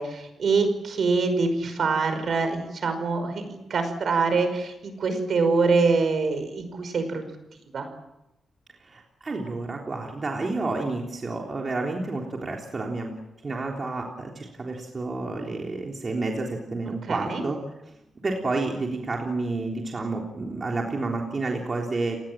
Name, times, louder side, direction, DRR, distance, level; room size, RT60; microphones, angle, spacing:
voice 1, 0.0-7.3 7.7-7.9 17.0-17.4, right 4 dB, 60° right, 8 dB, 5.5 m, -24 dB
voice 2, 8.8-13.1 13.4-17.6 18.2-22.2, right 3 dB, 35° right, 0 dB, 3.5 m, -30 dB
30.0 x 19.0 x 7.6 m, 0.90 s
wide cardioid pair, 130°, 0 cm